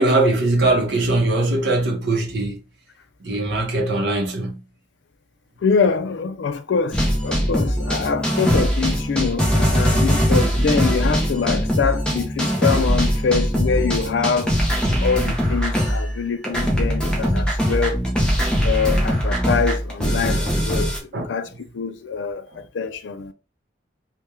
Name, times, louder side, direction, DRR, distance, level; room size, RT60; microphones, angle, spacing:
voice 1, 0.0-2.6 3.2-4.6 21.1-21.3, right 2 dB, 60° right, 0.7 m, -20 dB
voice 2, 5.6-14.5 14.9-18.0 18.6-23.3, left 5 dB, 75° left, 0.4 m, -24 dB
sound 1, 6.9-16.2 16.4-21.0, equal, 5° left, 0.6 m, -21 dB
3.4 x 2.2 x 2.9 m
head